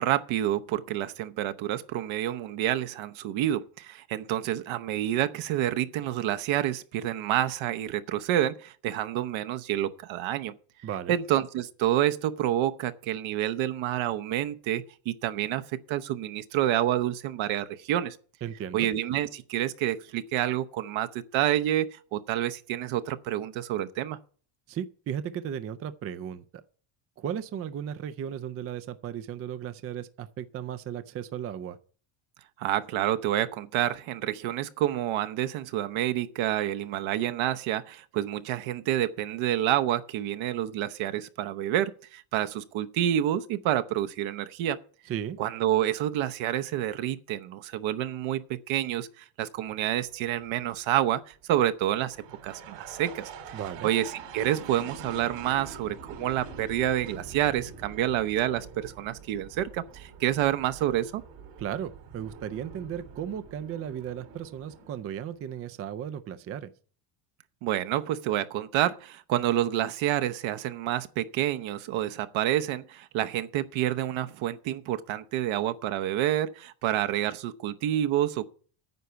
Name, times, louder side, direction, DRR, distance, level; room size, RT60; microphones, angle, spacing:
voice 1, 0.0-10.5 11.1-15.6 15.9-18.2 18.7-24.2 32.6-44.8 45.4-52.2 52.4-53.6 53.8-61.2 67.6-78.5, right 12 dB, 65° right, 0.9 m, -28 dB
voice 2, 10.8-11.2 18.4-18.9 24.7-26.4 27.2-31.8 45.1-45.4 53.5-53.9 61.6-66.7, right 9 dB, 30° right, 0.4 m, -35 dB
sound 1, 49.7-65.6, right 5 dB, 90° right, 3.7 m, -46 dB
9.4 x 5.7 x 8.0 m
cardioid pair, 155°, 50 cm